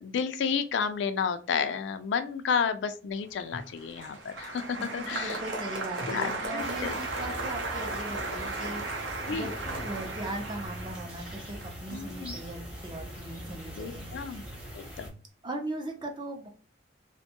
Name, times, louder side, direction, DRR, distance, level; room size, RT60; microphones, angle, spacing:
voice 1, 0.0-5.4 6.1-7.0 9.3-9.5 11.9-12.3 13.8-14.4 14.7-15.1, left 6 dB, 75° left, 10 dB, 0.3 m, -31 dB
Applause, 3.4-13.8 14.0-14.7, right 2 dB, 85° right, 0.7 m, -36 dB
voice 2, 4.8-9.5 9.8-14.4 15.4-16.5, right 1 dB, 25° right, 3 dB, 0.5 m, -39 dB
sound 1, 6.6-15.1, equal, 5° right, 0.8 m, -42 dB
2.6 x 2.2 x 2.8 m, 0.37 s
head